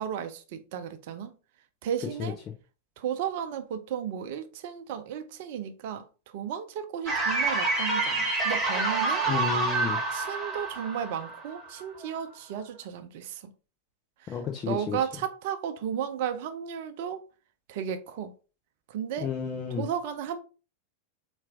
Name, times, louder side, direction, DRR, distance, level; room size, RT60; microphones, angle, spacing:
voice 1, 0.0-1.3 1.8-2.4 3.0-9.2 10.1-13.5 14.2-14.4 14.7-17.2 17.7-18.3 18.9-19.3 19.8-20.4, right 8 dB, 50° right, 0.5 m, -34 dB
sound 1, 7.1-12.1, right 3 dB, 15° right, 1.2 m, -28 dB
voice 2, 9.3-10.0 14.3-15.0 19.2-19.9, left 7 dB, 30° left, 0.6 m, -31 dB
4.4 x 2.4 x 3.5 m
figure-of-eight pair, 90°, 0 cm